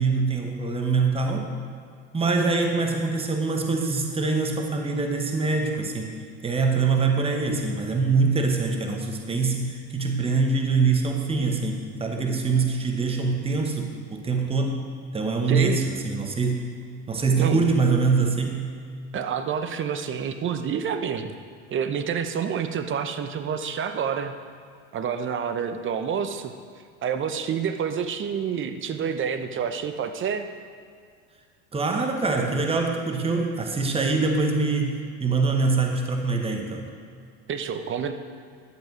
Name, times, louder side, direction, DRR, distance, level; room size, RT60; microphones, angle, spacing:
voice 1, 0.0-1.6 2.1-6.2 6.4-16.7 17.1-18.6 31.7-36.9, right 4 dB, 15° right, 3 dB, 1.2 m, -24 dB
voice 2, 15.5-15.8 17.4-17.6 19.1-21.3 21.7-24.3 24.9-26.5 27.0-30.5 37.5-38.1, right 7 dB, 35° right, 9 dB, 0.8 m, -28 dB
11.5 x 7.5 x 4.6 m, 2.2 s
supercardioid pair, 90°, 34 cm